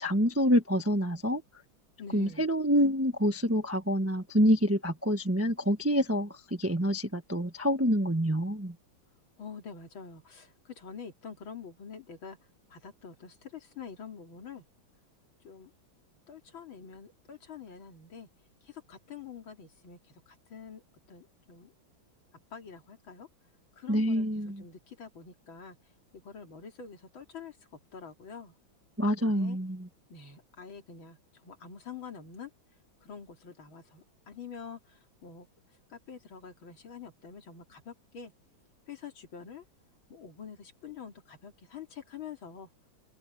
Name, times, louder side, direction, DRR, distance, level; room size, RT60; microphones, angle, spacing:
voice 1, 0.0-1.4 2.1-8.7 23.9-24.6 29.0-29.9, equal, 10° right, 0.8 m, -27 dB
voice 2, 2.0-2.5 9.4-12.4 12.7-14.6 15.4-15.7 16.3-18.3 18.6-20.0 20.3-20.8 21.1-21.7 22.5-23.3 23.8-24.3 24.6-25.8 26.2-27.6 27.9-28.5 29.2-29.6 30.1-32.5 33.0-35.5 35.9-38.3 38.9-39.6 40.1-42.7, left 6 dB, 75° left, 3.5 m, -46 dB
omnidirectional pair, 2.2 m